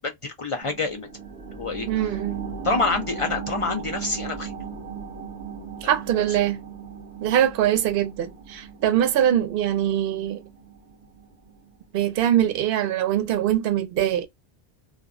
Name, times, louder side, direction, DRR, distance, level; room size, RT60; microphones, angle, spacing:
voice 1, 0.0-1.1 1.5-2.1 2.6-4.5 5.8-5.9 6.3-6.4, left 3 dB, 60° left, 0.3 m, -27 dB
sound 1, 0.6-11.7 12.1-12.2, right 7 dB, 35° right, 0.8 m, -37 dB
voice 2, 1.9-2.4 5.8-6.6 7.2-10.4 11.9-14.3, right 11 dB, 65° right, 0.7 m, -22 dB
2.2 x 2.0 x 3.6 m
omnidirectional pair, 1.1 m